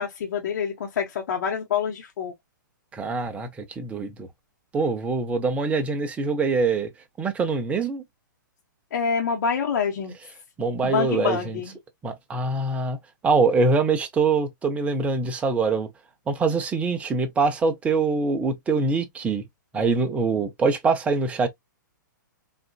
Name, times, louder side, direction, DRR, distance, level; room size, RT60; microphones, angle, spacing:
voice 1, 0.0-2.3 8.9-10.1 10.8-11.7, left 6 dB, 65° left, 1.1 m, -26 dB
voice 2, 2.9-4.3 4.7-6.9 7.2-8.0 10.6-11.6 12.0-13.0 13.2-15.9 16.3-19.4 19.7-21.5, right 4 dB, 10° right, 0.7 m, -24 dB
4.1 x 2.5 x 2.3 m
hypercardioid pair, 140°, 11 cm